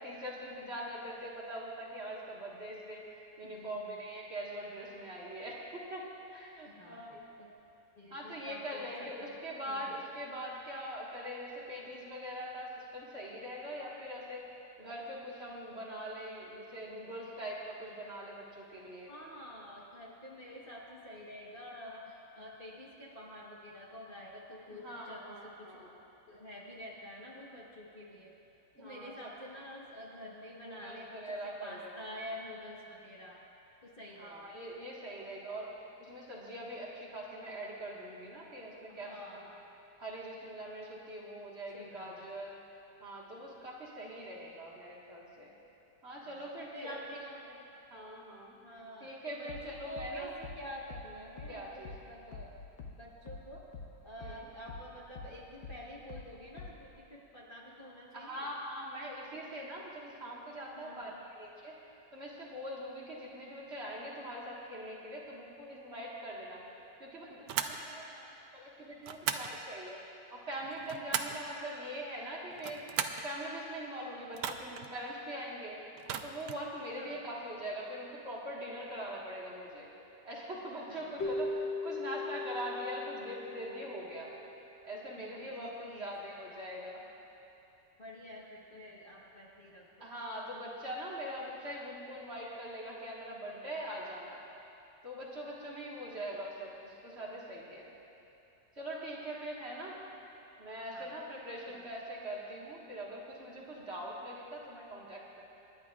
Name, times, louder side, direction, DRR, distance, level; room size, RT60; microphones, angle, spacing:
voice 1, 0.0-6.0 6.3-7.2 8.1-14.5 14.8-19.1 24.7-26.0 28.8-29.1 30.6-32.0 34.2-35.7 36.0-39.5 40.0-42.6 43.0-45.5 46.0-47.0 47.9-48.6 49.0-50.3 51.5-52.0 54.2-54.5 58.1-61.8 62.1-66.6 67.0-70.0 70.3-72.8 73.2-75.8 76.2-79.9 80.2-84.3 84.8-87.0 90.0-94.4 95.0-97.9 98.8-100.0 100.6-105.4, equal, 40° right, -5 dB, 1.8 m, -42 dB
voice 2, 3.4-4.0 6.6-7.5 8.0-9.3 9.7-9.9 19.1-25.9 26.3-28.3 28.8-33.4 33.8-34.5 38.9-39.6 41.7-42.1 46.2-47.4 48.6-52.5 53.0-53.6 54.0-58.5 60.8-61.2 77.0-77.3 80.9-81.1 85.2-86.1 88.0-90.1 100.9-101.1 101.7-101.8, equal, 35° left, -5 dB, 1.2 m, -48 dB
sound 1, 49.5-54.4 54.7-56.9, left 4 dB, 60° left, 1.3 m, -47 dB
sound 2, 67.5-67.8 69.0-69.5 70.6-71.4 72.5-73.3 74.3-74.9 76.0-76.6, right 8 dB, 75° right, 1.2 m, -36 dB
Keyboard (musical), 81.2-84.4, left 2 dB, 90° left, 1.8 m, -38 dB
26.5 x 10.5 x 2.4 m, 2.8 s
omnidirectional pair, 1.9 m